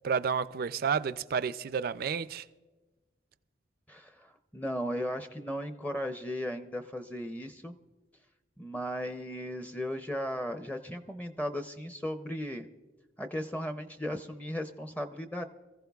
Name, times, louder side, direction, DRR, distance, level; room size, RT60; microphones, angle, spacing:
voice 1, 0.0-2.4, right 6 dB, 55° right, 0.4 m, -30 dB
voice 2, 3.9-7.7 8.6-12.7 13.2-15.4, equal, 10° left, 0.5 m, -36 dB
25.0 x 15.0 x 2.3 m
head